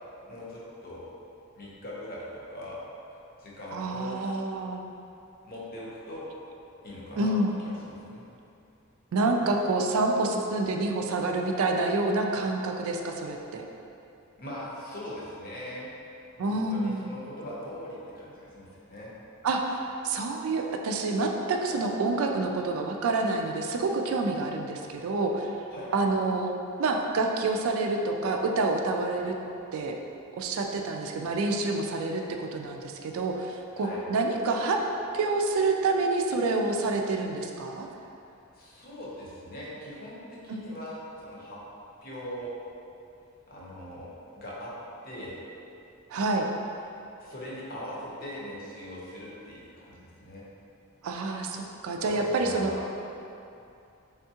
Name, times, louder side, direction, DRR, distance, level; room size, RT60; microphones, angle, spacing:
voice 1, 0.3-1.1 1.5-2.8 3.4-4.1 5.4-6.3 6.8-7.4 7.6-8.2 14.4-15.9 16.3-19.1 25.7-25.9 33.8-34.0 38.5-41.6 42.0-42.5 43.5-44.1 44.3-44.7 45.0-45.4 47.2-50.5 52.0-52.8, left 1 dB, 40° left, -6 dB, 0.8 m, -41 dB
voice 2, 3.7-4.8 7.2-7.5 9.1-13.6 16.4-17.1 19.4-25.5 25.9-26.5 26.8-29.3 29.7-29.9 30.3-34.8 35.1-37.9 40.5-40.6 46.1-46.5 51.0-52.7, right 3 dB, 70° right, 2 dB, 0.3 m, -28 dB
3.5 x 3.4 x 2.8 m, 2.7 s
head